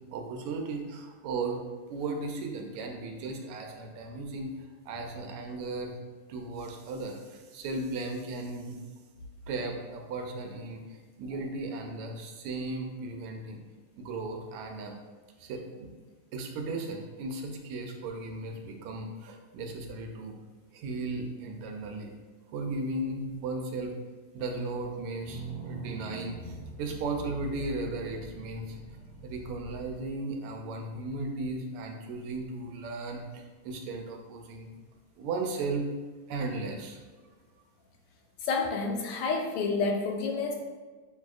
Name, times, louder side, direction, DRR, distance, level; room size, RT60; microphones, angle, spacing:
voice 1, 0.1-1.6 1.9-4.5 4.9-6.0 6.3-8.8 9.5-13.6 14.0-14.9 15.4-15.9 16.3-20.4 20.7-22.1 22.5-24.0 24.3-28.8 29.2-34.7 35.2-35.8 36.3-37.0, right 3 dB, 85° right, 3 dB, 1.5 m, -36 dB
sound 1, 25.3-30.1, right 2 dB, 70° right, 1.5 m, -43 dB
voice 2, 38.4-40.6, left 4 dB, 85° left, 1 dB, 1.6 m, -29 dB
6.2 x 2.7 x 2.3 m, 1.3 s
omnidirectional pair, 2.4 m